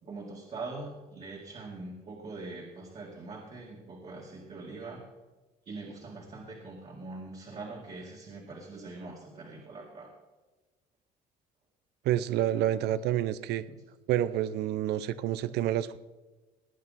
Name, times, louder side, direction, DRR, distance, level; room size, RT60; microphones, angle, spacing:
voice 1, 0.0-5.1 5.7-10.1, right 3 dB, 40° right, -2 dB, 2.1 m, -43 dB
voice 2, 12.0-13.6 14.1-16.0, right 12 dB, 80° right, 16 dB, 0.6 m, -28 dB
18.5 x 9.0 x 4.1 m, 1.2 s
cardioid pair, 110°, 17 cm